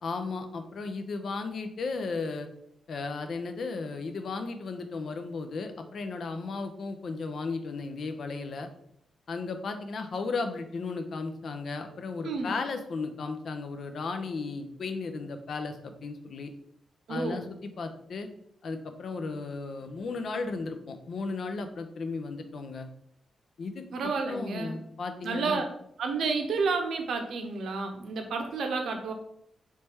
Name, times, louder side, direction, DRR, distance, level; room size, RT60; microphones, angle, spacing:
voice 1, 0.0-2.5 2.9-8.7 9.3-16.5 17.1-18.3 18.6-22.9 23.6-25.6, left 4 dB, 55° left, 7 dB, 0.5 m, -35 dB
voice 2, 17.1-17.5 23.9-24.8 25.2-25.7 26.0-29.1, right 4 dB, 85° right, 4 dB, 0.7 m, -30 dB
4.1 x 3.2 x 3.4 m, 0.74 s
wide cardioid pair, 150°, 0 cm